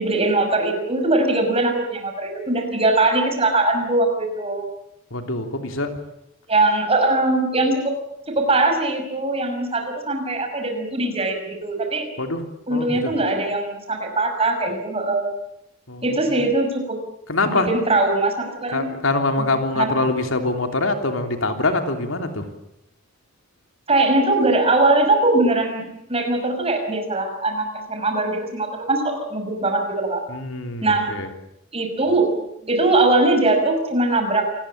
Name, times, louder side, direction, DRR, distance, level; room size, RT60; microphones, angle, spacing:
voice 1, 0.0-4.6 6.5-8.0 8.3-12.1 12.7-15.3 16.0-17.0 17.5-18.9 19.8-19.9 23.9-30.2 30.8-31.1 31.7-32.3 32.6-34.7, right 2 dB, 30° right, 4 dB, 6.0 m, -21 dB
voice 2, 5.1-5.9 12.2-12.4 12.7-13.1 15.9-16.3 17.3-17.7 18.7-22.5 30.3-31.3, left 2 dB, 70° left, 6 dB, 3.3 m, -24 dB
27.5 x 20.0 x 8.8 m, 0.81 s
head